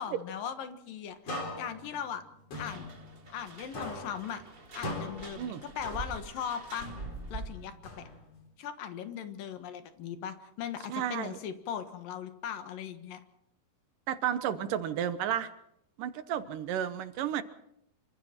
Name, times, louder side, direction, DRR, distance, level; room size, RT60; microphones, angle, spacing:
voice 1, 0.0-2.2 2.6-2.9 3.3-4.4 4.8-6.9 7.3-8.0 8.6-13.2, left 8 dB, 85° left, 9 dB, 3.2 m, -39 dB
sound 1, 1.3-3.5 3.7-6.4 6.8-8.5, left 1 dB, 45° left, 4.9 m, -41 dB
sound 2, 2.5-7.8, right 3 dB, 55° right, 0.6 m, -45 dB
voice 2, 10.9-11.4 14.1-15.5 16.0-17.4, right 10 dB, 80° right, 11 dB, 2.6 m, -32 dB
26.0 x 25.0 x 4.4 m, 0.77 s
omnidirectional pair, 3.9 m